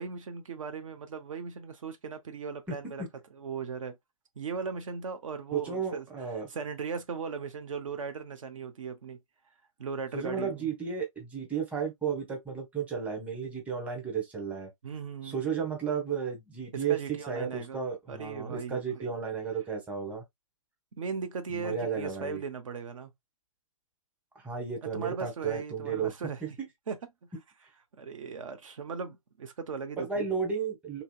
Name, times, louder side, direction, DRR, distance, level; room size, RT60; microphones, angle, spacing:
voice 1, 0.0-3.0 3.3-3.9 4.4-6.0 6.5-9.2 9.8-10.7 14.8-15.5 16.7-17.8 18.1-19.1 21.0-23.1 24.8-26.4 26.9-27.0 28.0-30.2, right 5 dB, 65° right, 0.7 m, -38 dB
voice 2, 2.7-3.1 5.5-6.5 10.1-14.7 15.2-20.2 21.5-22.4 24.3-26.1 26.4-26.7 30.0-31.0, right 6 dB, 10° right, 0.9 m, -33 dB
2.9 x 2.7 x 2.2 m
hypercardioid pair, 130°, 18 cm